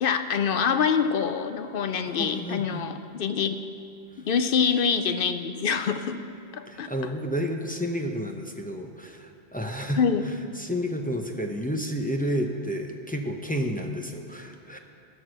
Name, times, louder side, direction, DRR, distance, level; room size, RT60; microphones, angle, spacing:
voice 1, 0.0-3.6 4.2-6.2 6.5-6.9 10.0-10.2, left 6 dB, 65° left, 9 dB, 0.7 m, -25 dB
voice 2, 2.0-2.8 6.7-10.0 10.6-14.8, equal, 10° left, 2 dB, 0.6 m, -31 dB
16.0 x 6.4 x 6.3 m, 2.5 s
omnidirectional pair, 1.1 m